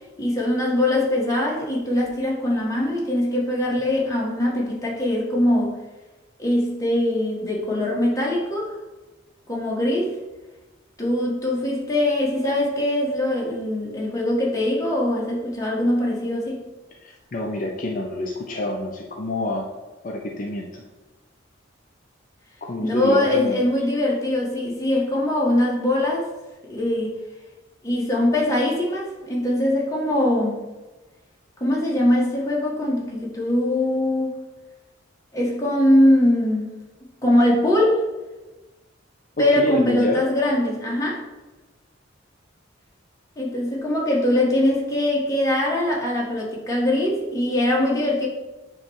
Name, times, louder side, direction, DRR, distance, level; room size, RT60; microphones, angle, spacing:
voice 1, 0.2-5.7 6.4-8.7 9.5-10.2 11.0-16.6 22.8-26.3 26.7-27.1 27.8-30.7 31.6-34.3 35.3-36.7 37.2-38.0 39.4-41.2 43.3-48.3, left 1 dB, 15° left, -4 dB, 1.7 m, -22 dB
voice 2, 17.0-19.7 20.0-20.8 22.6-23.7 39.4-40.3, left 2 dB, 45° left, 0 dB, 0.7 m, -27 dB
8.7 x 3.2 x 6.4 m, 1.1 s
head